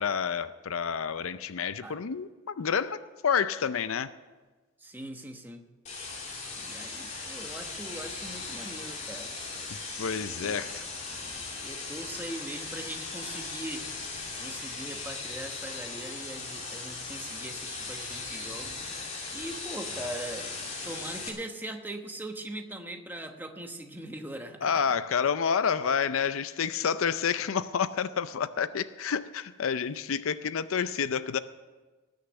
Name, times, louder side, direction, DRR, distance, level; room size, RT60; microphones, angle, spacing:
voice 1, 0.0-4.1 10.0-10.8 24.6-31.4, left 7 dB, 75° left, 13 dB, 0.5 m, -29 dB
voice 2, 4.8-5.6 6.6-9.3 10.3-10.8 11.6-13.9 14.4-18.8 19.3-20.5 20.8-24.8, right 1 dB, 10° right, 5 dB, 1.0 m, -41 dB
sound 1, 5.9-21.3, left 3 dB, 35° left, 2.9 m, -38 dB
19.0 x 6.6 x 7.9 m, 1.3 s
head